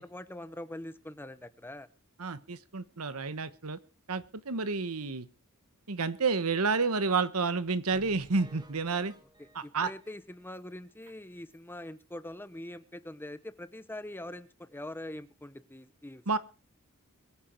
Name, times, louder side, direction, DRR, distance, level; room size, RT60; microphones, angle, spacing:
voice 1, 0.0-1.9 9.6-16.4, left 1 dB, 10° left, 13 dB, 0.8 m, -43 dB
voice 2, 2.2-3.8 4.1-5.3 5.9-9.1 9.5-9.9 16.3-16.4, right 4 dB, 80° right, 13 dB, 1.2 m, -30 dB
sound 1, 7.9-10.6 11.0-11.1 11.5-11.6 12.0-12.1, equal, 20° right, 1.8 m, -56 dB
22.5 x 9.0 x 4.5 m, 0.34 s
head